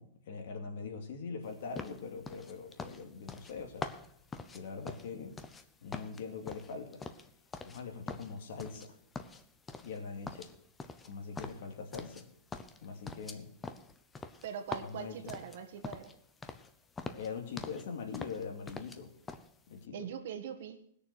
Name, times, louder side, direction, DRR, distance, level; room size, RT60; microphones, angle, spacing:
voice 1, 0.0-4.0 4.5-5.4 5.8-7.0 7.6-9.0 9.8-10.5 11.0-12.3 12.8-13.5 14.8-15.3 17.1-19.1 19.7-20.0, left 5 dB, 60° left, 4 dB, 2.6 m, -42 dB
sound 1, 1.8-5.6 5.9-7.8 8.1-8.9 9.2-10.0 10.3-12.3 12.5-16.2 16.4-16.7 17.0-17.9 18.1-19.0 19.3-19.5, left 4 dB, 10° left, 0.7 m, -44 dB
voice 2, 14.4-16.1 19.9-20.8, right 8 dB, 60° right, 7 dB, 1.6 m, -42 dB
19.0 x 6.8 x 6.0 m, 0.66 s
supercardioid pair, 170°, 0 cm